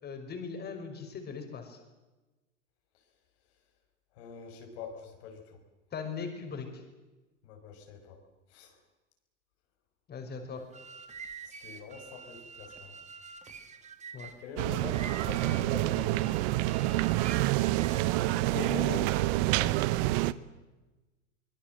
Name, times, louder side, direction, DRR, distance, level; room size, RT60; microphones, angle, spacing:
voice 1, 0.0-1.8 5.9-6.8 10.1-10.6 14.1-14.3 18.5-19.0, left 5 dB, 25° left, 5 dB, 5.7 m, -39 dB
voice 2, 4.1-5.6 7.4-8.2 8.5-8.8 11.4-13.0 14.4-16.3 19.5-19.8, left 5 dB, 60° left, 4 dB, 5.9 m, -45 dB
sound 1, 10.6-18.2, right 5 dB, 20° right, 2.3 m, -47 dB
sound 2, 14.6-20.3, right 17 dB, 45° right, 1.1 m, -27 dB
24.5 x 22.5 x 7.7 m, 1.1 s
hypercardioid pair, 105°, 37 cm